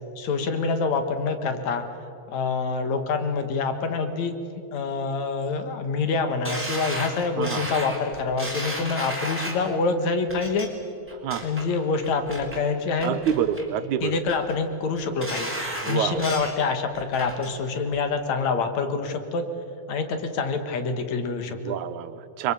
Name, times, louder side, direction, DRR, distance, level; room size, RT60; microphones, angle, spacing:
voice 1, 0.2-1.9 2.3-10.7 11.4-13.2 14.0-15.5 15.9-19.4 19.9-21.7, left 4 dB, 70° left, 7 dB, 2.8 m, -26 dB
sound 1, 6.4-9.7 10.3-10.7 11.1-11.6 12.0-12.6 13.0-13.7 14.0-14.5 15.0-16.6 16.9-17.5 17.9-18.0, right 1 dB, 5° right, 3.5 m, -33 dB
voice 2, 13.0-14.2 15.8-16.2 21.6-22.5, right 9 dB, 80° right, 10 dB, 2.3 m, -27 dB
30.0 x 22.5 x 7.0 m, 2.7 s
omnidirectional pair, 3.4 m